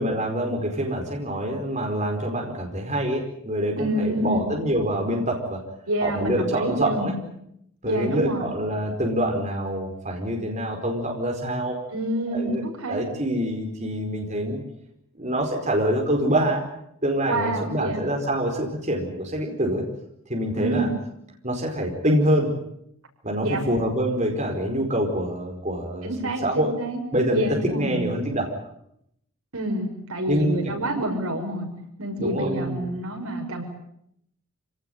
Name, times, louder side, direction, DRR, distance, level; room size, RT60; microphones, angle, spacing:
voice 1, 0.0-5.6 6.0-7.1 7.8-11.8 12.3-12.6 12.9-14.6 15.2-16.6 17.0-19.8 20.3-20.9 21.4-22.5 23.2-26.7 27.1-28.5 30.3-31.0 32.2-32.8, equal, 30° right, 1 dB, 4.8 m, -25 dB
voice 2, 3.8-4.5 5.9-7.1 7.8-8.5 11.9-12.6 12.8-13.0 17.2-18.0 20.6-20.9 23.4-23.6 26.0-27.0 27.3-28.1 29.5-31.7 32.0-33.6, right 1 dB, 75° right, 4 dB, 5.9 m, -28 dB
27.5 x 18.5 x 9.3 m, 0.74 s
head